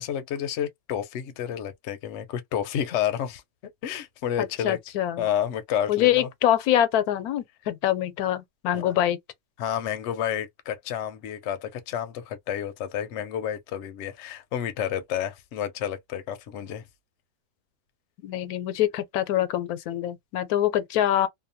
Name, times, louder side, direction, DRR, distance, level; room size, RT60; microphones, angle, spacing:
voice 1, 0.0-3.4 3.8-4.8 5.2-6.3 8.7-8.9 9.6-16.8, left 9 dB, 65° left, 0.8 m, -30 dB
voice 2, 4.6-5.2 5.9-9.2 18.2-21.3, left 12 dB, 85° left, 1.1 m, -24 dB
2.8 x 2.1 x 2.6 m
omnidirectional pair, 1.5 m